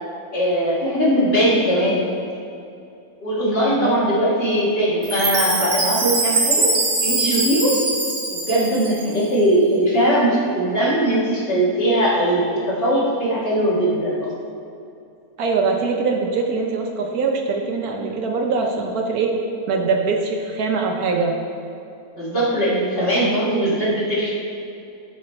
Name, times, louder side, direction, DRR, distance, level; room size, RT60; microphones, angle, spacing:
voice 1, 0.3-2.1 3.2-6.7 7.0-7.7 8.3-14.3 22.1-24.3, right 1 dB, 35° left, -7 dB, 1.8 m, -20 dB
Chime, 5.0-9.3, right 3 dB, 40° right, 1.1 m, -22 dB
voice 2, 15.4-19.3 19.7-21.4, right 4 dB, 70° right, 2 dB, 1.1 m, -22 dB
11.5 x 3.9 x 4.3 m, 2.6 s
omnidirectional pair, 1.7 m